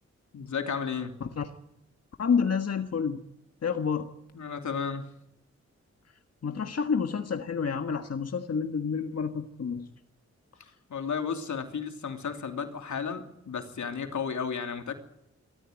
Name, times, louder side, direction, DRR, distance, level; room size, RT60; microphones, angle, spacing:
voice 1, 0.3-1.2 4.3-5.0 10.9-14.9, left 6 dB, 85° left, 5 dB, 2.9 m, -33 dB
voice 2, 2.2-3.2 3.6-4.1 6.4-9.9, left 6 dB, 60° left, 6 dB, 1.6 m, -29 dB
23.0 x 14.0 x 9.4 m, 0.85 s
cardioid pair, 80°, 29 cm